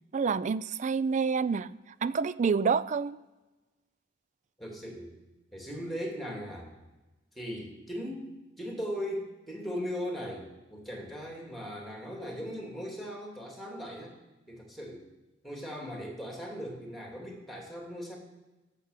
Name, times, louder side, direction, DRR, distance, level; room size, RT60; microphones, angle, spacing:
voice 1, 0.1-1.7 2.0-3.2, right 5 dB, 40° right, 17 dB, 0.4 m, -28 dB
voice 2, 4.6-5.2 5.5-6.7 7.3-8.3 8.6-14.2 14.5-15.0 15.4-18.2, equal, ahead, 0 dB, 2.6 m, -38 dB
15.0 x 6.7 x 6.6 m, 1.1 s
head